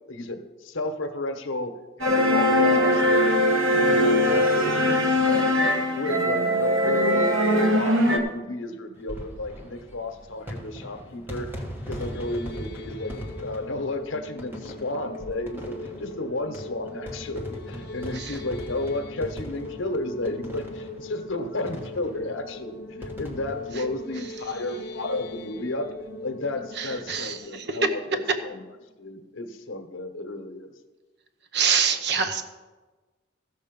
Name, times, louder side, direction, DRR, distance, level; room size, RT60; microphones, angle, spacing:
voice 1, 0.1-3.4 3.7-7.4 7.7-11.6 11.8-25.9 26.2-28.6 29.0-30.7, left 2 dB, 80° left, 6 dB, 1.1 m, -32 dB
sound 1, 2.0-8.2, left 1 dB, 85° right, 1.3 m, -21 dB
sound 2, 8.9-25.0 25.3-25.4 25.6-25.7 27.0-27.2, equal, 10° right, 1.3 m, -40 dB
sound 3, 11.7-28.8, left 2 dB, 55° left, 0.9 m, -41 dB
voice 2, 26.8-27.8 31.5-32.4, right 6 dB, 55° right, 7 dB, 0.8 m, -26 dB
14.5 x 6.6 x 5.3 m, 1.3 s
head